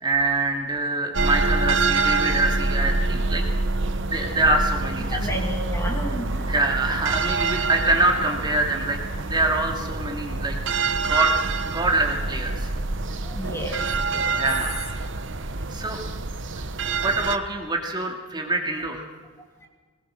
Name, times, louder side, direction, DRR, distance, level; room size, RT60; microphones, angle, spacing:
voice 1, 0.0-3.4 4.1-5.2 6.5-9.0 9.3-10.5 11.1-11.3 11.7-12.7 14.4-15.0 15.7-16.0 17.0-19.1, right 2 dB, 20° right, 2 dB, 2.3 m, -25 dB
sound 1, 1.1-17.4, right 3 dB, 60° right, 1.1 m, -26 dB
voice 2, 5.1-6.4 13.2-14.4 15.8-15.9 19.6-19.7, equal, 10° left, 2 dB, 2.5 m, -32 dB
21.5 x 19.5 x 6.4 m, 1.4 s
head